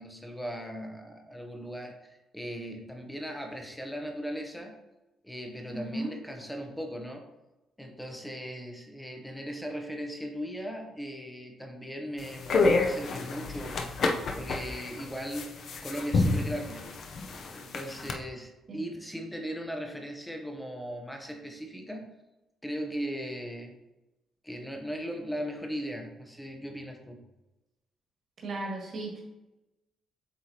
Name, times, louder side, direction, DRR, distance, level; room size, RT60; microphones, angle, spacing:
voice 1, 0.0-4.8 5.2-7.3 7.8-13.8 14.3-16.9 17.5-22.2 22.6-23.7 24.4-27.2, equal, 5° left, 3 dB, 0.7 m, -38 dB
voice 2, 5.7-6.1 18.7-18.8 28.4-29.2, right 2 dB, 40° right, -3 dB, 1.8 m, -35 dB
sound 1, 12.2-18.1, left 3 dB, 45° left, 0.6 m, -29 dB
8.0 x 4.7 x 2.8 m, 0.99 s
cardioid pair, 170°, 0 cm